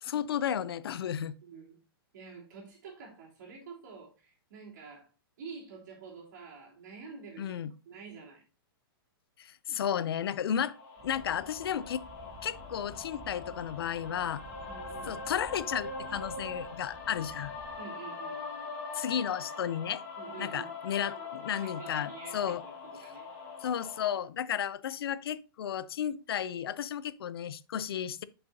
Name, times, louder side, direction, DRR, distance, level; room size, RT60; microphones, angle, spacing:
voice 1, 0.0-1.3 7.4-7.7 9.4-10.7 11.0-12.0 12.4-14.4 15.1-17.5 18.9-20.0 20.4-22.6 23.6-28.2, left 9 dB, 80° left, 0.4 m, -33 dB
voice 2, 1.4-1.8 2.1-5.1 5.4-7.6 7.8-8.4 14.7-15.2 17.8-18.4 20.2-20.7 21.0-23.3, right 5 dB, 50° right, 3.0 m, -48 dB
sound 1, 10.6-24.2, left 4 dB, 35° left, 1.6 m, -42 dB
sound 2, 11.0-17.8, right 2 dB, 20° right, 1.3 m, -51 dB
7.9 x 5.5 x 2.6 m
hypercardioid pair, 175°, 13 cm